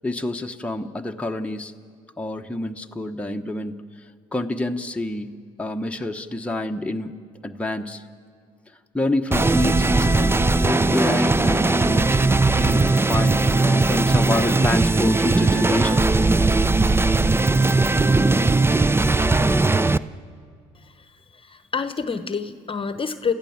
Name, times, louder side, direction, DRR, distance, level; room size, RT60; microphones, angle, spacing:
voice 1, 0.0-1.7 2.2-3.8 4.3-5.3 5.6-7.1 7.4-8.0 8.9-16.0, left 2 dB, 5° left, 3 dB, 1.1 m, -27 dB
sound 1, 9.3-20.0, right 3 dB, 15° right, 0.6 m, -19 dB
voice 2, 21.4-23.3, left 5 dB, 35° left, 11 dB, 1.1 m, -27 dB
29.0 x 14.5 x 7.3 m, 2.1 s
supercardioid pair, 60°, 16 cm